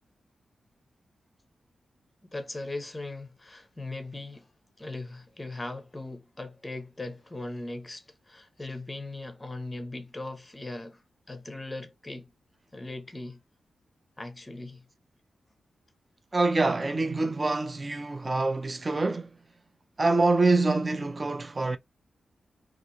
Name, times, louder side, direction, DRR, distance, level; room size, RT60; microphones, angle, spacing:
voice 1, 2.2-4.5 4.8-11.0 11.3-12.3 12.7-13.4 14.2-14.9, left 2 dB, 15° left, 0.7 m, -39 dB
voice 2, 16.3-19.3 20.0-21.8, right 3 dB, 25° right, 0.5 m, -25 dB
2.9 x 2.4 x 3.8 m
wide cardioid pair, 155°, 0 cm